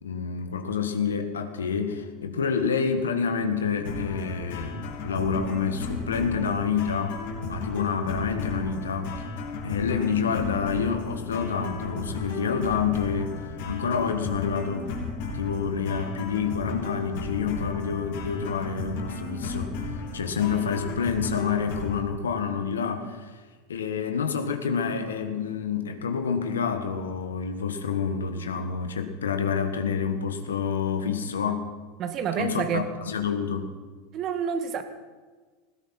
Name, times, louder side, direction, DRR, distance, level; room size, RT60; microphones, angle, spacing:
voice 1, 0.0-7.2 7.4-9.1 9.6-13.4 13.6-14.9 15.3-19.7 20.1-23.4 23.7-31.7 32.4-33.7, left 6 dB, 85° left, 7 dB, 1.5 m, -28 dB
sound 1, 3.9-22.0, left 3 dB, 70° left, 3.8 m, -34 dB
voice 2, 32.0-32.9 34.1-34.8, right 7 dB, 45° right, 8 dB, 1.8 m, -28 dB
19.0 x 16.5 x 4.4 m, 1.4 s
hypercardioid pair, 85°, 0 cm